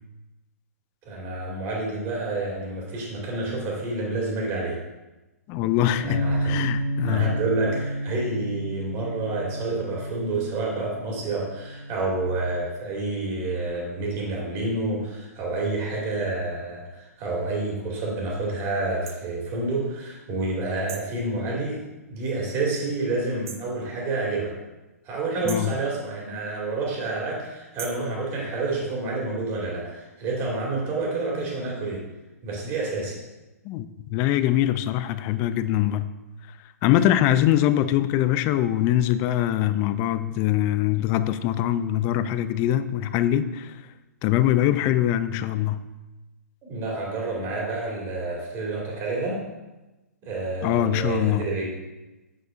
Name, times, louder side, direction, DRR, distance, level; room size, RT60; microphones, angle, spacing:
voice 1, 1.0-4.8 5.9-6.5 7.0-21.8 22.1-24.5 25.0-32.0 32.4-33.1 46.6-49.4 50.2-51.7, right 2 dB, 30° right, -2 dB, 2.4 m, -29 dB
voice 2, 5.5-7.3 25.4-25.7 33.6-36.1 36.8-43.8 44.2-45.8 50.6-51.5, left 12 dB, 30° left, 13 dB, 0.4 m, -23 dB
Bass guitar, 6.0-12.3, right 1 dB, 5° right, 1.4 m, -31 dB
sound 1, 19.1-19.2 20.9-21.2 23.5-23.7 25.5-25.8 27.8-28.1, right 7 dB, 55° right, 0.8 m, -39 dB
7.8 x 7.6 x 2.5 m, 1.1 s
figure-of-eight pair, 120°, 9 cm